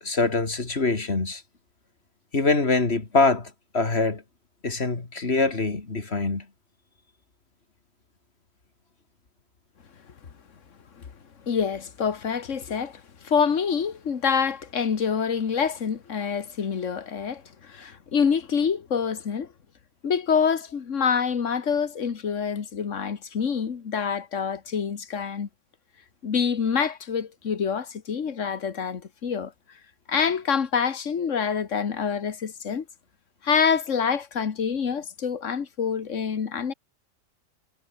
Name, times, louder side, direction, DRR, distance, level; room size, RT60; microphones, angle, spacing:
voice 1, 0.0-1.4 2.3-4.2 4.6-6.5, left 3 dB, 50° left, 2.9 m, -24 dB
voice 2, 11.5-19.5 20.0-25.5 26.2-29.5 30.1-32.8 33.4-36.7, left 6 dB, 65° left, 1.8 m, -26 dB
omnidirectional pair, 1.4 m